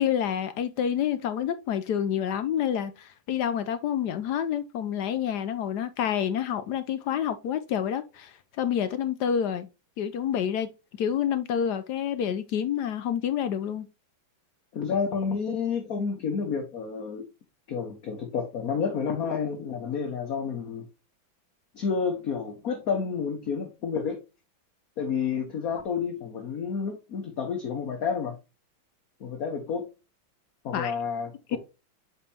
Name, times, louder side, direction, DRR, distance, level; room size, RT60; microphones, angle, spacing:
voice 1, 0.0-9.7 10.0-10.7 11.0-13.9 30.7-30.9 31.5-31.6, left 9 dB, 70° left, 1.1 m, -28 dB
voice 2, 14.7-17.2 17.7-20.9 21.7-24.2 25.0-28.4 29.2-29.8 30.6-31.6, left 6 dB, 55° left, 1.4 m, -30 dB
7.4 x 5.2 x 2.8 m
omnidirectional pair, 2.1 m